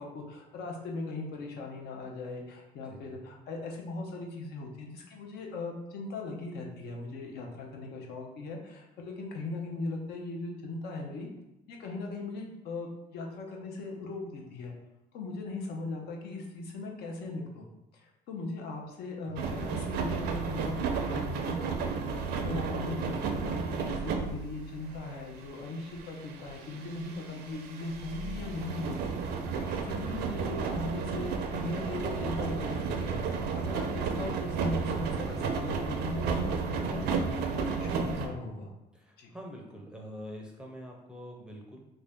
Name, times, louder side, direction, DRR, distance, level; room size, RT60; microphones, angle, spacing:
voice 1, 0.0-11.3 11.7-14.7 15.1-17.7 17.9-21.9 22.3-29.1 29.6-33.2 33.5-38.7 39.2-39.3, left 2 dB, 75° left, 1 dB, 0.7 m, -39 dB
voice 2, 2.8-3.3 19.3-19.6 38.9-41.8, equal, 5° right, -1 dB, 0.5 m, -45 dB
sound 1, 19.4-38.3, right 5 dB, 75° right, 0.5 m, -33 dB
3.3 x 2.6 x 3.5 m, 0.92 s
cardioid pair, 110°, 17 cm